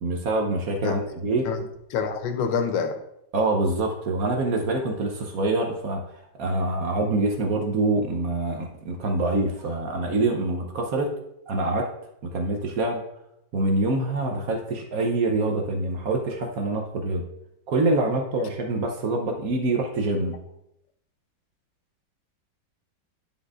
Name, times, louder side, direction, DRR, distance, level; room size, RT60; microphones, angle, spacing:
voice 1, 0.0-1.4 3.3-6.0 6.4-11.1 11.5-11.9 12.3-13.0 13.5-17.2 17.7-20.3, right 2 dB, 60° right, 2 dB, 1.0 m, -25 dB
voice 2, 1.9-3.0, left 6 dB, 85° left, 7 dB, 1.4 m, -26 dB
9.9 x 5.2 x 2.4 m, 0.80 s
omnidirectional pair, 2.0 m